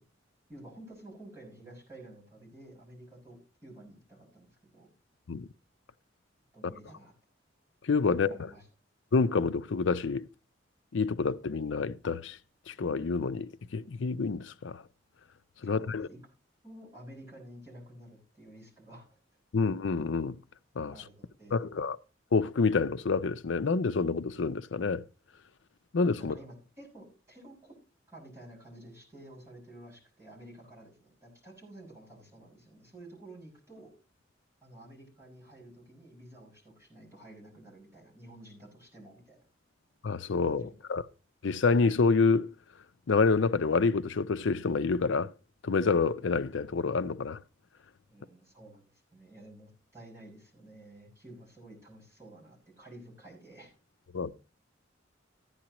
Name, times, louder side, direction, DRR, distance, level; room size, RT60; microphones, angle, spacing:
voice 1, 0.5-4.9 6.5-7.1 8.2-8.7 15.6-16.2 16.6-19.2 20.9-21.7 26.2-27.8 28.1-33.9 34.6-39.4 40.5-40.7 48.1-53.7, right 1 dB, 15° right, 6.0 m, -51 dB
voice 2, 7.8-8.3 9.1-10.3 10.9-12.4 12.7-14.8 15.6-16.1 19.5-20.4 20.8-20.9 21.5-22.0 22.3-25.0 25.9-26.3 40.0-41.0 41.4-42.5 43.1-45.3 45.6-47.4 54.1-54.3, left 4 dB, 75° left, 0.5 m, -27 dB
14.5 x 10.0 x 3.0 m
head